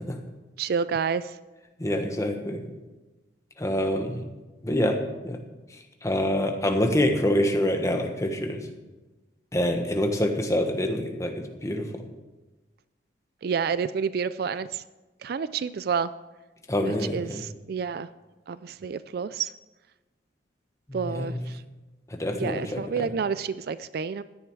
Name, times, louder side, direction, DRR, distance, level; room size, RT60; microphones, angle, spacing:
voice 1, 0.6-1.4 13.4-14.8 15.2-16.1 16.8-18.1 18.5-19.5 20.9-21.6 22.3-24.2, right 6 dB, 55° right, 15 dB, 0.4 m, -29 dB
voice 2, 1.8-2.7 3.6-4.2 4.6-5.4 6.0-8.6 9.5-11.3 11.6-11.9 16.7-17.4 21.0-21.4 22.1-22.8, left 1 dB, 15° left, 4 dB, 1.3 m, -26 dB
16.0 x 10.5 x 4.7 m, 1.1 s
head